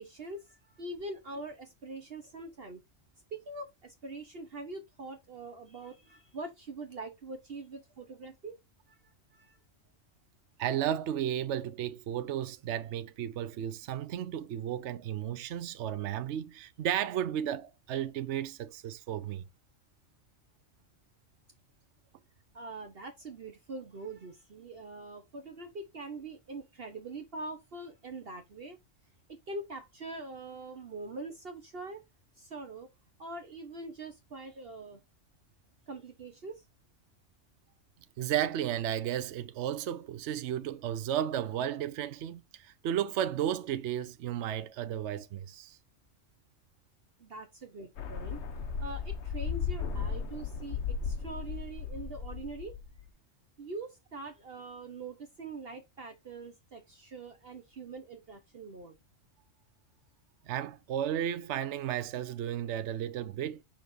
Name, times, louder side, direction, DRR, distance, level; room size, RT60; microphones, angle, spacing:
voice 1, 0.0-2.8 3.3-8.6 8.9-9.0 9.3-9.6 22.5-28.8 29.5-32.0 32.4-32.9 33.2-35.0 35.9-36.6 47.2-48.4 48.8-52.8 53.6-59.0, right 3 dB, 55° right, 1.2 m, -43 dB
voice 2, 10.6-19.4 38.2-45.8 60.5-63.6, right 10 dB, 70° right, 0.9 m, -33 dB
sound 1, 48.0-53.1, left 6 dB, 65° left, 1.1 m, -36 dB
7.0 x 5.9 x 2.7 m
omnidirectional pair, 1.3 m